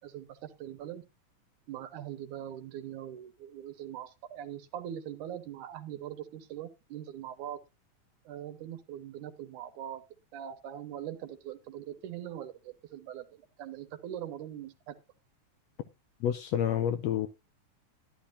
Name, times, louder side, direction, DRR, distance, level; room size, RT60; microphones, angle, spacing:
voice 1, 0.0-1.0 1.7-7.6 8.3-10.0 10.3-15.0, right 10 dB, 80° right, 2.5 m, -42 dB
voice 2, 16.2-17.3, left 10 dB, 75° left, 1.6 m, -29 dB
11.5 x 11.5 x 2.6 m
omnidirectional pair, 3.6 m